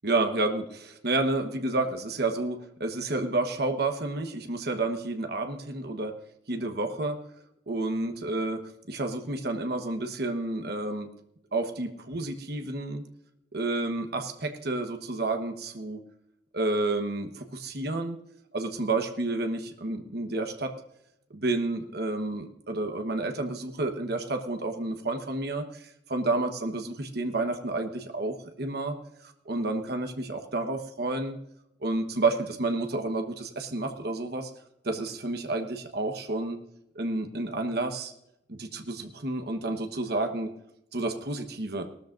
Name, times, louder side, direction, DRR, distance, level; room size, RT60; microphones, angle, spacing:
voice 1, 0.0-6.1 6.5-7.2 7.7-11.1 11.5-13.0 13.5-16.0 16.5-18.2 18.5-20.7 21.3-29.0 29.2-31.4 31.8-34.5 34.8-36.6 36.9-38.1 38.5-40.5 40.9-41.9, right 2 dB, 60° right, 6 dB, 1.2 m, -30 dB
18.5 x 13.5 x 2.6 m, 0.81 s
head